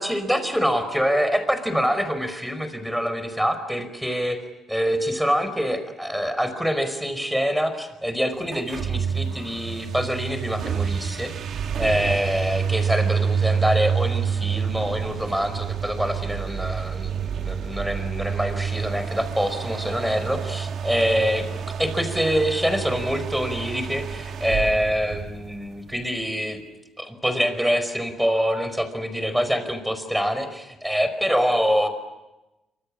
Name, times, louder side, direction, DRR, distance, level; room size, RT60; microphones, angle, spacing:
voice 1, 0.0-4.4 4.7-11.4 11.8-21.5 21.8-26.6 27.0-31.9, equal, ahead, 10 dB, 5.0 m, -25 dB
sound 1, 8.4-25.9, right 7 dB, 60° right, 2.5 m, -28 dB
26.5 x 25.5 x 8.7 m, 1.0 s
cardioid pair, 105°, 0 cm